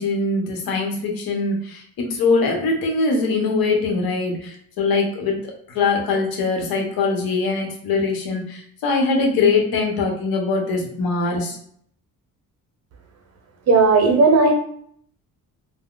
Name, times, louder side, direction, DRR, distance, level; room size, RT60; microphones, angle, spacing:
voice 1, 0.0-5.4 5.7-11.6, left 3 dB, 85° left, 0 dB, 0.9 m, -22 dB
voice 2, 13.7-14.5, right 3 dB, 45° right, 2 dB, 0.7 m, -14 dB
2.4 x 2.1 x 3.6 m, 0.63 s
cardioid pair, 160°, 35 cm